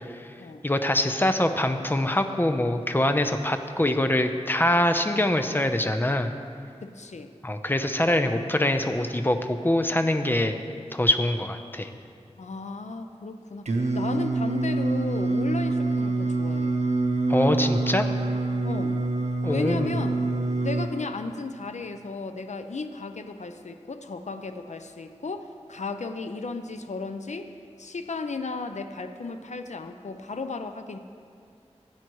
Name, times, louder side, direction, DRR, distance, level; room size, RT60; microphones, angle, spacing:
voice 1, 0.6-6.3 7.4-10.5 10.9-11.9 17.3-18.1 19.4-19.9, left 1 dB, 20° left, 6 dB, 0.7 m, -24 dB
voice 2, 6.8-7.3 12.4-16.8 18.6-19.0 19.5-20.2 20.6-27.5 27.8-31.0, left 3 dB, 90° left, 8 dB, 0.5 m, -34 dB
Singing, 13.7-20.9, right 2 dB, 80° right, 0.8 m, -26 dB
16.0 x 9.3 x 3.1 m, 2.3 s
wide cardioid pair, 45°, 12 cm